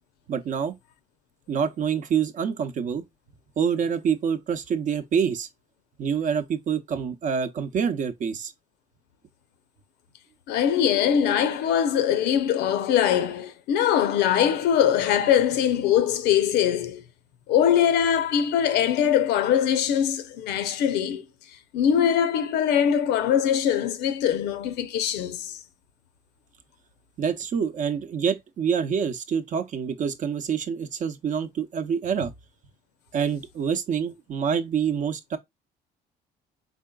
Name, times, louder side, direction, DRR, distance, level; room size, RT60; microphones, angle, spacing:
voice 1, 0.3-0.7 1.5-3.0 3.6-5.5 6.0-8.5 27.2-32.3 33.1-35.4, right 7 dB, 50° right, 0.7 m, -26 dB
voice 2, 10.5-17.0 17.5-21.2 21.7-25.6, left 9 dB, 85° left, 0.7 m, -22 dB
4.2 x 3.7 x 2.3 m
cardioid pair, 110°, 17 cm